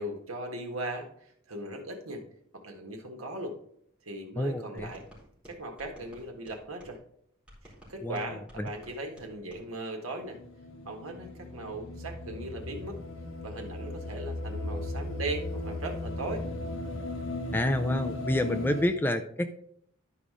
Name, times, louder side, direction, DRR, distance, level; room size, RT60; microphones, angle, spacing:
voice 1, 0.0-2.2 2.5-3.6 4.0-5.0 5.4-7.0 7.6-10.4 10.8-13.0 13.4-16.4, right 2 dB, 85° right, 4 dB, 1.5 m, -38 dB
voice 2, 4.4-4.9 8.0-8.7 17.5-19.5, left 1 dB, 10° left, 8 dB, 0.4 m, -29 dB
sound 1, 4.8-7.0 7.5-9.6, equal, 5° right, 3.7 m, -53 dB
sound 2, 10.2-18.8, left 2 dB, 75° left, 1.1 m, -37 dB
11.5 x 4.9 x 3.7 m, 0.67 s
head